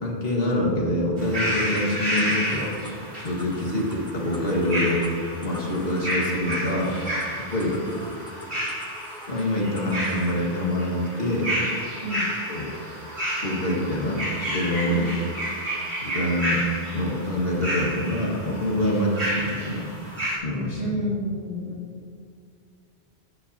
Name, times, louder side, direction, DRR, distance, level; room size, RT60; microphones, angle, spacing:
voice 1, 0.0-2.7 3.2-5.0 5.4-6.9 7.5-7.8 9.3-11.5 12.5-12.7 13.4-15.1 16.0-16.6 16.9-19.9 20.4-21.0, left 1 dB, 65° left, -3 dB, 1.9 m, -25 dB
sound 1, 1.2-20.4, equal, 80° right, 2.8 m, -31 dB
sound 2, 1.7-10.4, equal, 5° left, 0.6 m, -46 dB
voice 2, 20.8-21.9, equal, 45° right, -7 dB, 2.7 m, -30 dB
12.0 x 9.7 x 2.8 m, 2.3 s
omnidirectional pair, 1.1 m